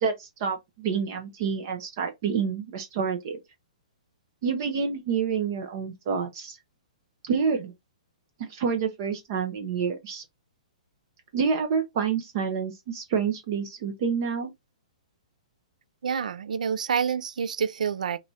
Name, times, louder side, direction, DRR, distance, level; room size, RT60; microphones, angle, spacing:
voice 1, 0.0-3.4 4.4-6.6 7.2-7.7 8.4-10.2 11.3-14.5, right 6 dB, 30° right, 0.6 m, -28 dB
voice 2, 16.0-18.2, right 7 dB, 90° right, 0.4 m, -28 dB
4.8 x 3.0 x 2.6 m
hypercardioid pair, 180°, 4 cm